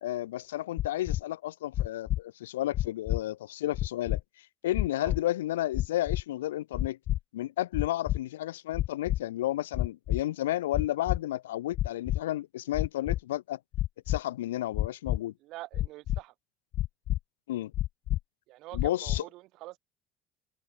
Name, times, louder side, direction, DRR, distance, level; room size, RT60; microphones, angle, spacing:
voice 1, 0.0-4.2 4.6-7.0 7.3-13.6 14.1-15.3 17.5-17.7 18.7-19.2, left 14 dB, 75° left, 1.1 m, -32 dB
sound 1, 0.8-1.2 1.7-2.2 2.7-3.2 3.7-4.2 4.7-5.2 5.7-6.2 6.7-7.2 7.7-8.2 8.7-9.2 9.7-10.2 10.7-11.2 11.7-12.2 12.7-13.2 13.7-14.2 14.7-15.2 15.7-16.2 16.7-17.2 17.7-18.2 18.7-19.2, left 14 dB, 55° left, 0.5 m, -28 dB
voice 2, 15.4-16.3 18.5-19.8, right 18 dB, 60° right, 3.0 m, -45 dB
figure-of-eight pair, 60°, 0 cm